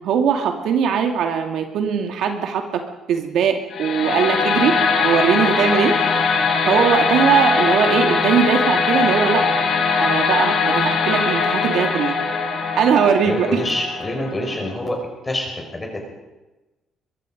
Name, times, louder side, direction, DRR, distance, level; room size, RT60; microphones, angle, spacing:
voice 1, 0.0-2.8 3.1-4.8 5.0-5.9 6.7-9.4 10.0-12.1 12.8-13.5, right 7 dB, 65° right, 4 dB, 2.4 m, -20 dB
sound 1, 3.7-14.7, left 5 dB, 55° left, 4.3 m, -21 dB
voice 2, 13.2-15.0 15.2-16.0, left 1 dB, 15° left, 2 dB, 5.6 m, -26 dB
24.0 x 22.5 x 5.3 m, 1.1 s
cardioid pair, 170°, 0 cm